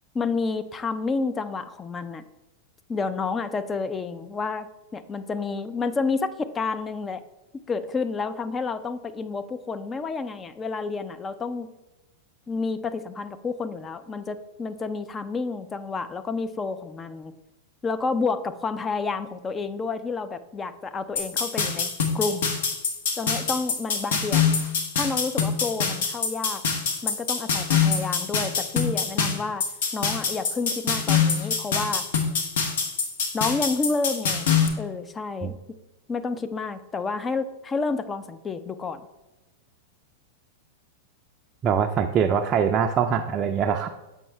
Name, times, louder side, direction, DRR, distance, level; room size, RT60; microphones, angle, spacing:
voice 1, 0.1-2.2 2.9-7.2 7.5-11.7 12.5-17.3 17.8-22.5 23.2-26.6 27.0-29.7 29.9-32.0 33.3-34.5 34.8-35.5 36.1-39.0, left 4 dB, 20° left, 11 dB, 0.5 m, -30 dB
sound 1, 21.2-34.7, left 6 dB, 70° left, 1.1 m, -25 dB
voice 2, 41.6-43.9, right 7 dB, 35° right, 3 dB, 0.4 m, -23 dB
7.3 x 5.4 x 3.4 m, 1.0 s
hypercardioid pair, 100°, 0 cm